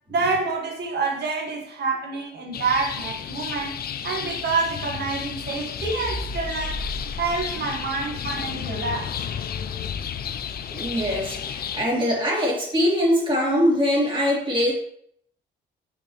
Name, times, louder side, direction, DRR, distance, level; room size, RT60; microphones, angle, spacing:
voice 1, 0.1-6.9 7.2-9.1, right 4 dB, 55° right, 1.5 m, -27 dB
sound 1, 2.5-11.8, left 8 dB, 50° left, 0.5 m, -32 dB
sound 2, 5.8-10.3, equal, ahead, 0.7 m, -37 dB
voice 2, 10.7-14.7, equal, 25° right, 2.6 m, -22 dB
6.2 x 5.4 x 3.2 m
cardioid pair, 90°, 20 cm